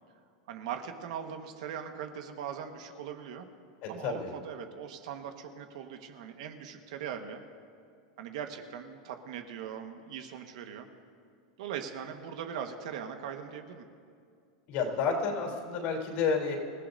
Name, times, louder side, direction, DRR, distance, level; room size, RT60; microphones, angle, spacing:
voice 1, 0.5-3.5 3.9-7.4 8.2-10.9 11.6-13.9, right 8 dB, 70° right, 5 dB, 1.5 m, -40 dB
voice 2, 3.8-4.3 14.7-16.6, left 5 dB, 50° left, 2 dB, 3.5 m, -30 dB
27.0 x 15.5 x 2.7 m, 2.3 s
supercardioid pair, 145°, 4 cm